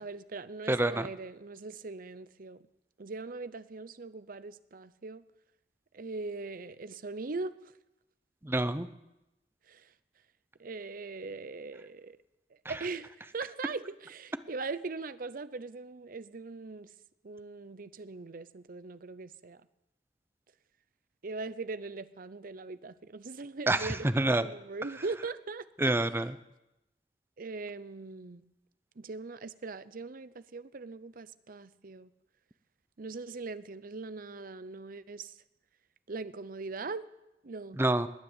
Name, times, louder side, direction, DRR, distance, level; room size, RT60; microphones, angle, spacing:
voice 1, 0.0-2.6 3.0-5.2 5.9-7.5 9.7-9.9 10.6-12.2 12.7-16.9 17.2-19.6 21.2-25.9 27.4-28.4 29.0-32.1 33.0-35.3 36.1-37.1 37.4-37.8, right 3 dB, 55° right, 15 dB, 0.6 m, -40 dB
voice 2, 0.7-1.1 8.4-8.9 23.7-24.4 25.8-26.3 37.8-38.1, right 1 dB, 15° right, 12 dB, 0.6 m, -27 dB
19.0 x 9.7 x 7.3 m, 0.94 s
head